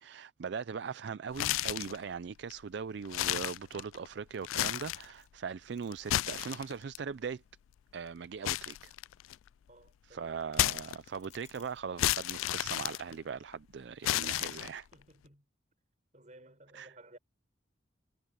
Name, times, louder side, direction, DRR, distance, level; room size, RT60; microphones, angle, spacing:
voice 1, 0.0-7.4 7.9-8.9 10.1-14.9 16.7-16.9, right 6 dB, 60° right, 0.4 m, -40 dB
sound 1, 1.3-2.0 2.5-2.6 3.0-4.1 4.4-5.1 5.9-7.0 8.4-9.5 10.5-11.3 12.0-13.5 14.0-14.9, left 14 dB, 90° left, 0.3 m, -32 dB
sound 2, 4.1-11.8 12.1-12.6 13.0-15.3, left 9 dB, 35° left, 6.2 m, -67 dB
voice 2, 9.7-10.4 14.9-15.5 16.1-17.2, right 1 dB, 35° right, 6.0 m, -57 dB
head